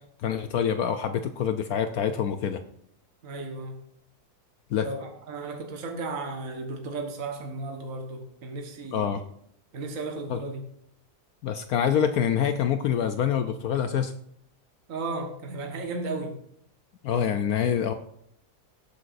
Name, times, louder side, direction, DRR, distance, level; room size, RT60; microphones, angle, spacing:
voice 1, 0.2-2.6 4.7-4.9 8.9-9.2 10.3-10.4 11.4-14.1 17.0-17.9, left 8 dB, 70° left, 9 dB, 1.1 m, -26 dB
voice 2, 3.2-3.8 4.8-9.2 9.7-10.6 14.9-16.3, right 3 dB, 55° right, 2 dB, 1.7 m, -34 dB
17.5 x 8.8 x 2.6 m, 0.69 s
omnidirectional pair, 1.8 m